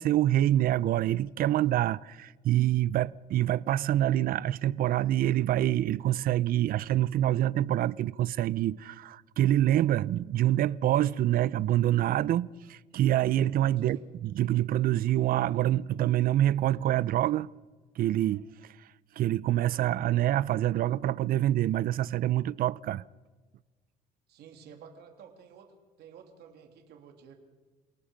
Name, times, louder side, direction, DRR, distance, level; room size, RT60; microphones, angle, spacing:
voice 1, 0.0-17.5 18.0-18.5 19.2-23.0, right 13 dB, 60° right, 0.6 m, -26 dB
voice 2, 24.3-27.3, right 7 dB, 75° right, 3.1 m, -51 dB
27.5 x 18.5 x 5.2 m
cardioid pair, 110°, 17 cm